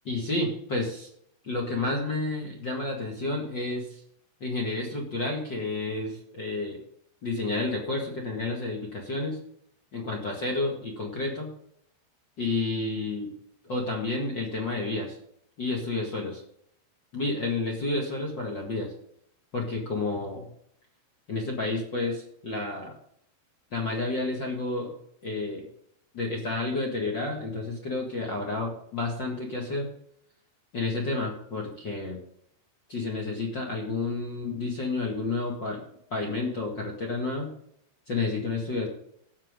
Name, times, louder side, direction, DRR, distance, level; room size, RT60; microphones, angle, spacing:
voice 1, 0.0-1.1 1.4-4.0 4.4-6.8 7.2-9.4 9.9-11.5 12.4-13.3 13.6-15.2 15.6-16.4 17.1-18.9 19.5-20.5 21.3-22.9 23.7-24.9 25.2-25.7 26.1-29.9 30.7-32.2 32.9-35.8 36.1-37.5 38.1-38.9, left 3 dB, 50° left, 0 dB, 1.3 m, -30 dB
17.0 x 7.3 x 3.8 m, 0.69 s
omnidirectional pair, 5.3 m